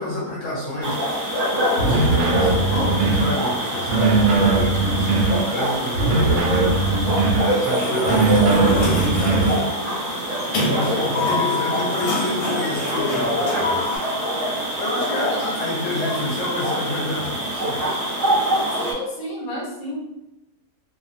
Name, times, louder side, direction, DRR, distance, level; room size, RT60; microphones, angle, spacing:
voice 1, 0.0-9.7 10.5-14.0 14.8-18.1, left 1 dB, 65° left, -5 dB, 0.9 m, -29 dB
sound 1, 0.8-18.9, equal, 40° right, 0.9 m, -25 dB
sound 2, 1.8-3.4 3.9-5.4 5.9-7.5 8.0-9.6, right 3 dB, 70° right, 0.9 m, -19 dB
Sliding door, 7.5-14.0, left 2 dB, 90° left, 1.2 m, -27 dB
voice 2, 10.8-11.2 15.0-15.5 18.8-20.0, left 1 dB, 35° left, -6 dB, 0.7 m, -32 dB
2.4 x 2.4 x 2.5 m, 0.92 s
omnidirectional pair, 1.6 m